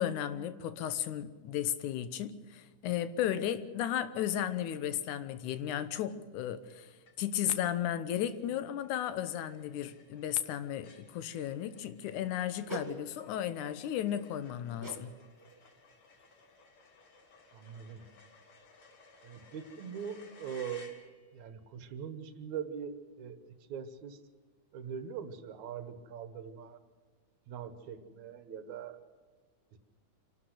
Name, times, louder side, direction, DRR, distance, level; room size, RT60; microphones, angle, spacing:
voice 1, 0.0-15.1, left 10 dB, 75° left, 13 dB, 2.4 m, -34 dB
sound 1, 7.1-7.5 7.9-8.0 8.2-21.5, left 4 dB, 45° left, 2.6 m, -59 dB
sound 2, 12.7-13.0 14.8-15.1 15.4-15.6 16.2-16.3, right 3 dB, 20° right, 0.4 m, -42 dB
voice 2, 17.5-18.0 19.2-20.9 21.3-24.2 24.7-26.8 27.5-29.0, right 7 dB, 70° right, 10 dB, 2.5 m, -42 dB
26.5 x 12.5 x 8.1 m, 1.4 s
omnidirectional pair, 3.6 m